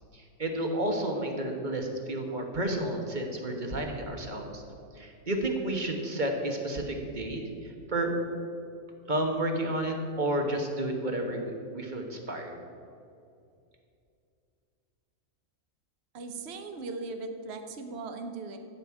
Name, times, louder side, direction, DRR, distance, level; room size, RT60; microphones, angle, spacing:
voice 1, 0.1-4.6 4.9-8.1 9.1-12.5, right 1 dB, 35° right, 3 dB, 1.4 m, -31 dB
voice 2, 16.1-18.6, right 3 dB, 55° right, 7 dB, 1.1 m, -38 dB
13.0 x 5.4 x 8.5 m, 2.5 s
omnidirectional pair, 1.5 m